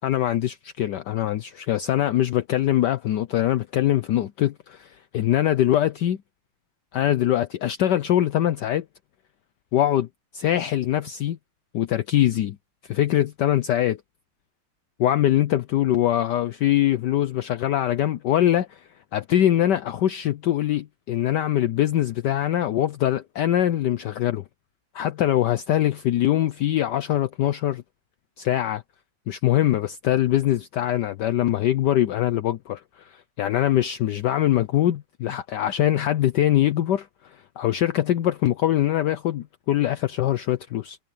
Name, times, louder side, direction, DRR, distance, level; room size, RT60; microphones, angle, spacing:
voice 1, 0.0-6.2 6.9-8.8 9.7-10.1 10.3-11.4 11.7-12.6 12.8-14.0 15.0-24.4 24.9-27.8 28.4-28.8 29.3-41.0, left 12 dB, 70° left, 1.2 m, -23 dB
omnidirectional pair, 2.2 m